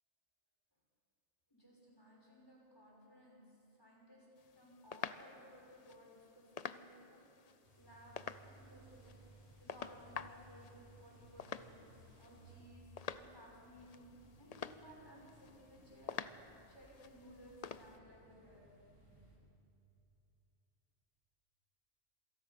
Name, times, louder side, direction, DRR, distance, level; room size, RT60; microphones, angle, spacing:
voice 1, 1.5-4.3 4.5-8.2 8.5-9.2 9.6-12.9 13.2-16.2 16.7-18.7, equal, 20° left, -4 dB, 5.7 m, -59 dB
sound 1, 4.4-18.0, left 7 dB, 50° left, 0.5 m, -50 dB
sound 2, 7.6-12.6, right 3 dB, 50° right, 6.7 m, -61 dB
sound 3, 8.4-19.4, right 1 dB, 25° right, 3.5 m, -67 dB
26.5 x 18.0 x 5.8 m, 2.7 s
omnidirectional pair, 1.3 m